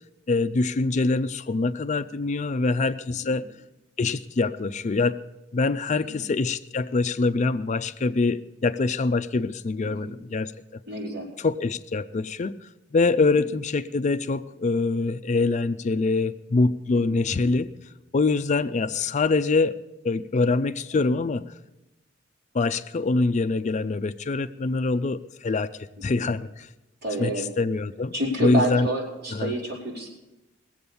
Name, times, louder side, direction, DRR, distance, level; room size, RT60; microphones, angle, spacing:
voice 1, 0.3-3.5 4.0-5.2 5.5-10.8 11.4-17.7 18.1-21.4 22.5-26.7 27.2-28.1 28.4-28.9 29.3-29.5, left 3 dB, 40° left, 12 dB, 0.4 m, -24 dB
voice 2, 10.9-11.3 13.3-13.4 16.9-17.2 20.9-21.2 26.1-26.2 27.0-27.5 28.1-30.1, right 1 dB, 55° right, -4 dB, 4.7 m, -29 dB
20.0 x 7.9 x 6.9 m, 0.98 s
head